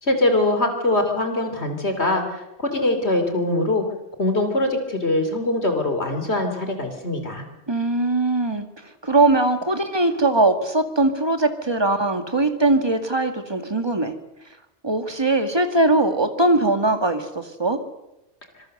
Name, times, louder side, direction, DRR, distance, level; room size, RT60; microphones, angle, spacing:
voice 1, 0.0-3.8 4.2-7.5, left 2 dB, 60° left, 6 dB, 3.3 m, -22 dB
voice 2, 7.7-8.7 9.0-14.1 14.8-17.8, right 2 dB, 20° right, 7 dB, 2.1 m, -20 dB
26.0 x 21.5 x 6.6 m, 0.90 s
omnidirectional pair, 1.3 m